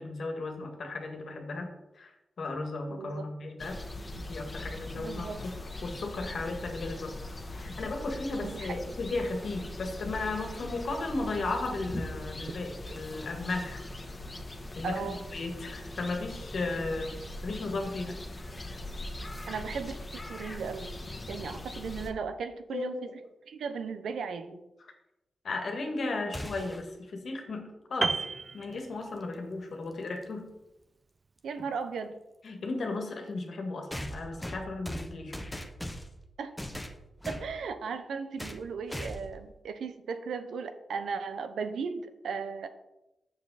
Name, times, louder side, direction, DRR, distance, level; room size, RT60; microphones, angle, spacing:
voice 1, 0.0-3.8 4.2-7.1 7.5-13.8 14.8-17.2 17.4-18.2 22.7-23.0 25.4-28.2 28.5-30.5 32.4-35.6, left 3 dB, 65° left, 3 dB, 1.6 m, -35 dB
voice 2, 2.9-3.3 4.9-5.5 8.4-8.7 14.8-15.2 19.5-20.9 21.3-23.1 23.5-24.6 31.4-32.2 36.4-36.6 37.3-42.7, right 5 dB, 85° right, 8 dB, 0.7 m, -36 dB
sound 1, 3.6-22.1, left 1 dB, 30° left, 1.3 m, -41 dB
sound 2, 26.3-26.9 29.0-29.1 30.2-30.3 33.9-36.2 36.6-37.5 38.4-38.6 38.9-39.4, equal, 5° left, 1.0 m, -39 dB
Piano, 28.0-29.4 29.7-30.0, right 4 dB, 45° right, 0.3 m, -32 dB
7.2 x 6.7 x 4.1 m, 0.93 s
cardioid pair, 70°, 0 cm